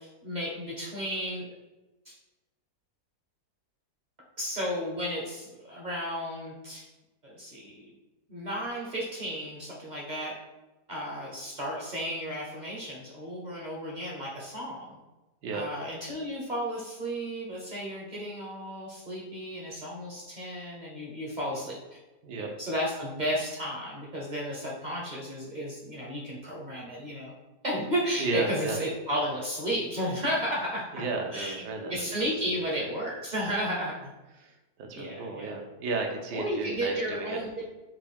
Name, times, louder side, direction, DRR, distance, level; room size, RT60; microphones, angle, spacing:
voice 1, 0.0-1.5 2.1-2.2 4.4-6.8 7.2-7.9 8.3-10.3 10.9-15.0 15.5-22.0 22.4-27.3 27.6-31.0 31.3-31.6 31.9-34.1 34.9-35.6 36.3-37.7, equal, 45° right, -4 dB, 0.5 m, -33 dB
voice 2, 28.2-28.8 30.9-32.0 34.3-37.4, right 3 dB, 90° right, 2 dB, 1.4 m, -34 dB
5.7 x 2.3 x 3.4 m, 1.1 s
omnidirectional pair, 1.7 m